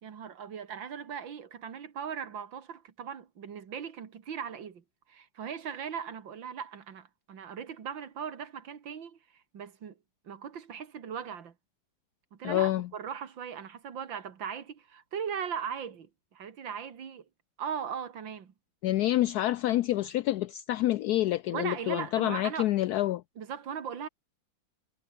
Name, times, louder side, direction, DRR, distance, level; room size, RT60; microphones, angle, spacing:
voice 1, 0.0-4.8 5.1-9.2 9.5-9.9 10.2-11.5 12.3-17.2 17.6-18.5 21.5-22.7 23.4-24.1, right 7 dB, 70° right, 2.7 m, -38 dB
voice 2, 12.4-12.9 18.8-23.2, left 14 dB, 75° left, 0.9 m, -27 dB
omnidirectional pair, 2.2 m